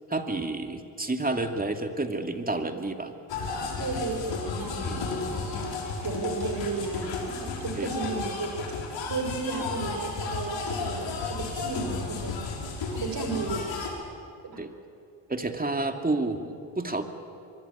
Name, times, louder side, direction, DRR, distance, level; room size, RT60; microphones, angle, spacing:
voice 1, 0.1-3.1 4.9-5.1 7.7-7.9 14.6-14.7 15.3-17.0, right 2 dB, 20° right, 5 dB, 2.6 m, -30 dB
sound 1, 3.3-13.9, left 4 dB, 70° left, 5.4 m, -33 dB
voice 2, 3.8-8.6 9.1-12.4 12.9-13.8 14.4-14.6, right 3 dB, 50° right, 4 dB, 6.6 m, -34 dB
24.5 x 22.5 x 8.8 m, 2.5 s
supercardioid pair, 70°, 45 cm